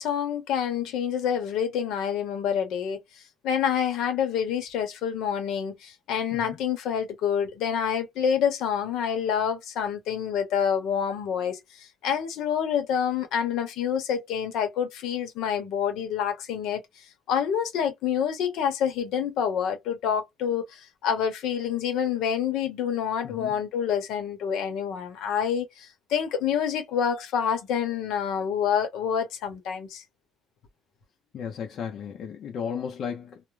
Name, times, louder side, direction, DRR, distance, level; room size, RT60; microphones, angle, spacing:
voice 1, 0.0-3.0 3.4-16.8 17.3-30.0, left 8 dB, 65° left, 0.8 m, -27 dB
voice 2, 23.2-23.6 31.3-33.4, left 7 dB, 45° left, 0.5 m, -34 dB
2.2 x 2.1 x 3.1 m
cardioid pair, 175°, 0 cm